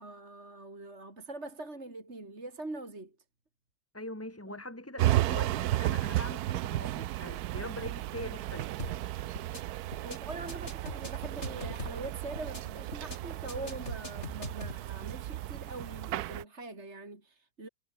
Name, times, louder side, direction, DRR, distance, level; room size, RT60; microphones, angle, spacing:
voice 1, 0.0-3.1 4.5-4.6 10.0-17.7, right 2 dB, 40° right, 4.3 m, -43 dB
voice 2, 3.9-8.8, left 1 dB, 10° left, 2.5 m, -42 dB
sound 1, 5.0-16.4, right 15 dB, 70° right, 1.1 m, -34 dB
sound 2, 8.8-9.1 9.4-9.6 9.9-10.2 10.5-12.1 12.4-12.6 12.9-13.2 13.5-14.8, left 1 dB, 40° left, 8.5 m, -41 dB
omnidirectional pair, 1.8 m